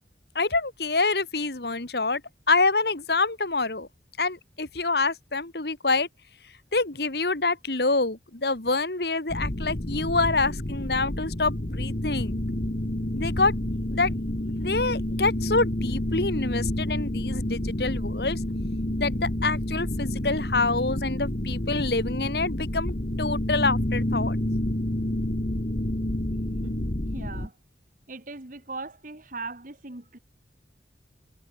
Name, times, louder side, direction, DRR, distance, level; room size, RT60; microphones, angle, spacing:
voice 1, 0.4-2.2 2.5-3.9 4.2-6.1 6.7-12.4 13.2-13.5 13.9-14.1 14.6-18.4 19.0-24.4, left 3 dB, 60° left, 2.1 m, -26 dB
sound 1, 9.3-27.5, left 1 dB, 45° left, 1.7 m, -29 dB
voice 2, 27.1-27.5 28.1-30.2, right 3 dB, 50° right, 2.0 m, -39 dB
head